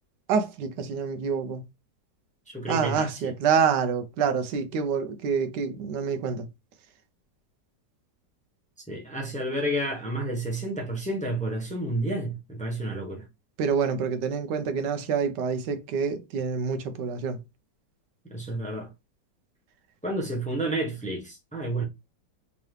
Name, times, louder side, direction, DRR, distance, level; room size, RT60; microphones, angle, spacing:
voice 1, 0.3-1.6 2.7-6.5 13.6-17.4, right 6 dB, 85° right, 1.3 m, -27 dB
voice 2, 2.5-3.3 8.9-13.2 18.3-18.9 20.0-21.8, right 1 dB, 5° left, 0.5 m, -30 dB
3.7 x 2.9 x 3.2 m
omnidirectional pair, 1.8 m